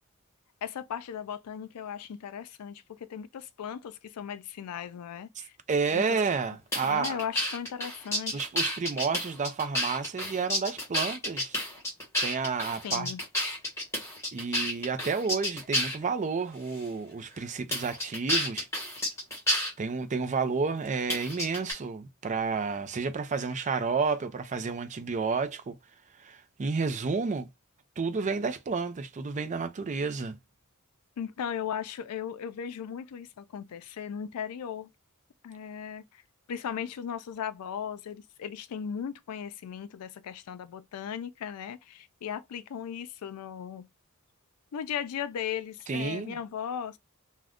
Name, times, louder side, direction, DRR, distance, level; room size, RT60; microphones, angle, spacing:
voice 1, 0.6-5.5 5.9-6.1 6.8-8.5 12.8-13.2 31.2-34.9 35.4-36.2 36.5-43.9 44.7-47.0, left 8 dB, 85° left, 0.4 m, -37 dB
voice 2, 5.7-7.2 8.3-11.6 12.2-13.1 14.3-18.7 19.8-25.8 26.2-27.5 28.0-30.4 45.9-46.4, right 5 dB, 35° right, 0.4 m, -30 dB
sound 1, 6.7-16.0 16.7-16.9 17.7-19.7 21.1-21.7, equal, 10° left, 1.2 m, -30 dB
2.4 x 2.1 x 3.5 m
head